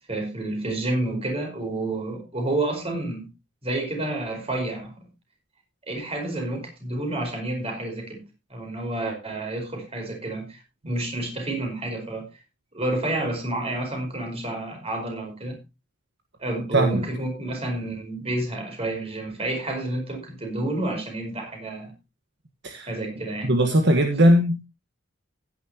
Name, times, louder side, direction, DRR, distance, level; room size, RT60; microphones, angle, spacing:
voice 1, 0.1-3.3 3.6-4.9 5.9-8.2 8.5-12.3 12.7-15.6 16.4-21.9 22.9-23.5, right 2 dB, 30° right, 3 dB, 4.7 m, -29 dB
voice 2, 23.4-24.6, right 1 dB, 60° right, 5 dB, 1.5 m, -19 dB
15.5 x 10.0 x 2.9 m, 0.26 s
head